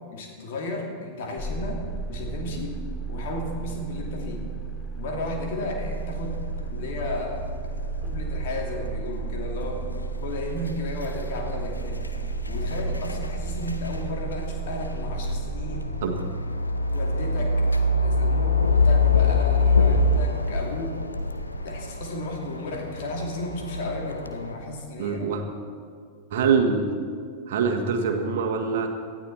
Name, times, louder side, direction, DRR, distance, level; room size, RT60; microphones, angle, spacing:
voice 1, 0.1-1.8 2.1-2.8 3.1-4.5 5.0-6.4 6.7-7.4 8.0-9.9 10.2-12.0 12.5-15.9 16.9-17.6 18.0-20.9 21.6-25.3, left 2 dB, 55° left, 1 dB, 2.7 m, -34 dB
sound 1, 1.4-15.9, right 5 dB, 20° left, 3.1 m, -34 dB
sound 2, 5.8-24.6, left 3 dB, 80° left, 0.8 m, -26 dB
voice 2, 25.0-25.4 26.3-26.9 27.5-28.9, right 5 dB, 55° right, 4 dB, 1.6 m, -24 dB
18.5 x 13.5 x 4.3 m, 2.1 s
figure-of-eight pair, 90°, 0 cm